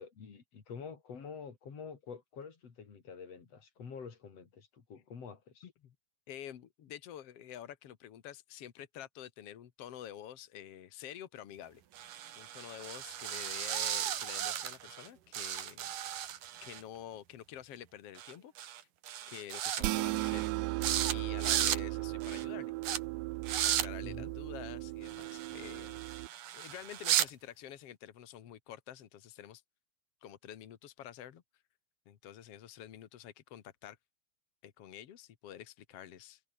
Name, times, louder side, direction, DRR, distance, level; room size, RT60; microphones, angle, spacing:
voice 1, 0.0-5.7 24.0-24.3 25.8-26.0, left 6 dB, 40° left, 3.8 m, -48 dB
voice 2, 5.6-5.9 6.3-15.9 16.6-18.8 19.3-20.5 21.1-22.7 23.6-26.0 26.5-29.6 30.2-31.4 32.0-34.0 34.6-36.4, left 10 dB, 65° left, 1.5 m, -48 dB
sound 1, 12.0-15.1 15.3-16.8 18.2-18.3 18.6-18.8 19.1-19.8 20.1-20.5 20.8-21.1 21.4-21.8 22.2-22.4 22.8-23.0 23.4-23.9 25.1-27.3, right 11 dB, 60° right, 2.9 m, -35 dB
sound 2, 19.8-26.3, right 22 dB, 85° right, 2.8 m, -36 dB
omnidirectional pair, 4.9 m